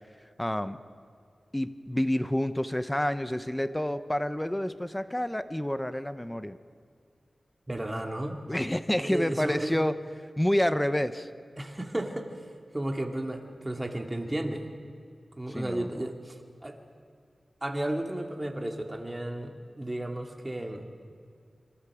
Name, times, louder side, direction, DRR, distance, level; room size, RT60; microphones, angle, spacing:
voice 1, 0.4-0.8 1.5-6.6 8.5-9.9 10.4-11.3 15.5-15.9, left 1 dB, 10° left, 11 dB, 0.9 m, -28 dB
voice 2, 7.7-8.4 9.0-9.7 11.6-12.3 12.7-14.7 15.4-16.8 17.6-20.8, right 1 dB, 20° right, 3 dB, 2.6 m, -33 dB
26.5 x 26.0 x 5.0 m, 2.3 s
wide cardioid pair, 65°, 0 cm